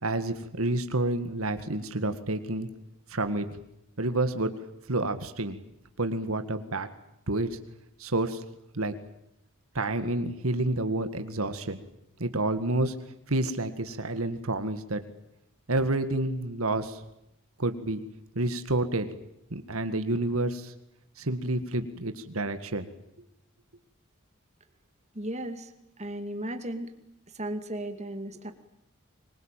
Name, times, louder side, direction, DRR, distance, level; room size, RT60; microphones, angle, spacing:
voice 1, 0.0-2.7 3.1-3.5 4.0-4.5 4.9-5.6 6.0-6.9 7.3-7.6 8.0-8.4 8.7-8.9 9.7-11.8 12.2-13.0 13.3-15.0 15.7-17.0 17.6-18.0 18.4-19.1 19.5-20.7 21.2-22.9, right 2 dB, 75° right, 9 dB, 1.9 m, -29 dB
voice 2, 25.1-25.7 26.0-26.9 27.3-28.5, right 1 dB, 30° right, 8 dB, 2.4 m, -35 dB
24.5 x 22.5 x 9.1 m, 0.82 s
head